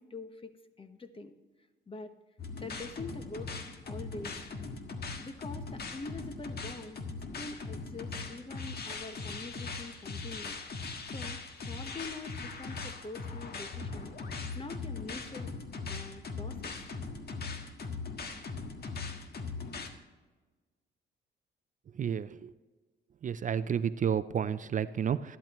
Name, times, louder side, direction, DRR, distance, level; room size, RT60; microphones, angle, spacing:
voice 1, 0.0-1.4 1.9-2.1 2.6-3.6 3.8-4.4 4.7-4.8 5.2-7.0 7.4-10.6 11.1-14.1 14.5-15.5 15.8-16.8, left 3 dB, 25° left, 9 dB, 1.1 m, -45 dB
sound 1, 2.4-19.9, left 4 dB, 55° left, 1.6 m, -40 dB
voice 2, 21.9-22.5 23.2-25.4, right 8 dB, 40° right, 14 dB, 0.4 m, -31 dB
13.5 x 12.0 x 3.0 m, 1.3 s
cardioid pair, 90°, 20 cm